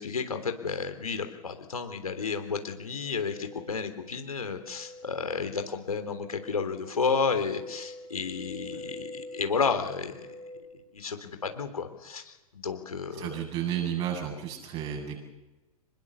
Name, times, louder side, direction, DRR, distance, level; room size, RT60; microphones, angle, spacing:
voice 1, 0.0-10.3 10.9-13.3, left 5 dB, 70° left, 7 dB, 3.5 m, -32 dB
sound 1, 2.1-10.6, left 1 dB, 85° right, 5.2 m, -46 dB
voice 2, 13.2-15.2, right 9 dB, 30° right, 2 dB, 7.9 m, -32 dB
27.0 x 21.0 x 7.1 m, 1.1 s
figure-of-eight pair, 105°, 19 cm